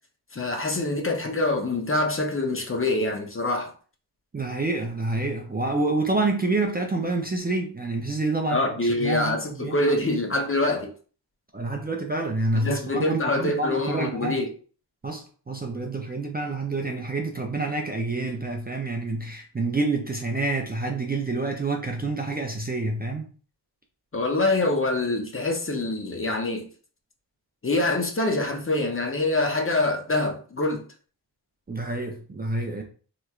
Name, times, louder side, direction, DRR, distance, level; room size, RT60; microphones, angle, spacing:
voice 1, 0.3-3.7 8.5-10.9 12.6-14.5 24.1-26.7 27.6-30.8, left 2 dB, 30° left, 0.5 m, -25 dB
voice 2, 4.3-9.8 11.5-14.4 15.0-23.3 31.7-32.8, right 2 dB, 25° right, 0.4 m, -28 dB
3.4 x 3.0 x 2.3 m
wide cardioid pair, 125°, 43 cm